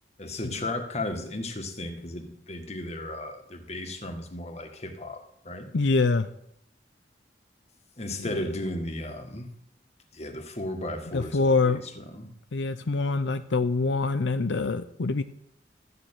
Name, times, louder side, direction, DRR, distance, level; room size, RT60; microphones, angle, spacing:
voice 1, 0.2-5.7 8.0-9.5 10.1-12.3, left 1 dB, 40° left, 5 dB, 1.8 m, -35 dB
voice 2, 5.7-6.3 8.2-8.3 11.1-11.8 12.5-15.2, left 3 dB, 90° left, 10 dB, 0.6 m, -25 dB
13.5 x 6.7 x 9.1 m, 0.74 s
head